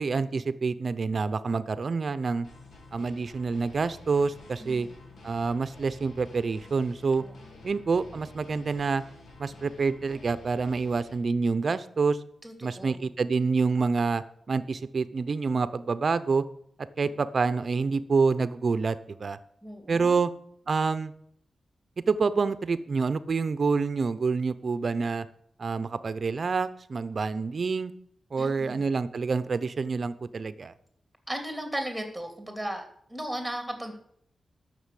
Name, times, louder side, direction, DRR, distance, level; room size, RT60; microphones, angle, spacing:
voice 1, 0.0-2.5 2.9-4.9 5.2-7.2 7.6-9.0 9.4-12.2 12.6-16.4 17.0-19.4 19.9-20.3 20.7-21.1 22.1-25.3 25.6-27.9 28.3-30.7, right 4 dB, 50° right, 14 dB, 0.7 m, -27 dB
sound 1, 2.4-11.2, left 2 dB, 85° left, 3.0 m, -50 dB
voice 2, 4.6-5.1 7.2-7.6 12.4-13.1 17.0-17.2 19.6-20.2 28.4-28.9 31.3-32.8 33.1-33.9, right 1 dB, ahead, 5 dB, 2.7 m, -36 dB
13.0 x 6.8 x 8.4 m, 0.69 s
wide cardioid pair, 105°, 0 cm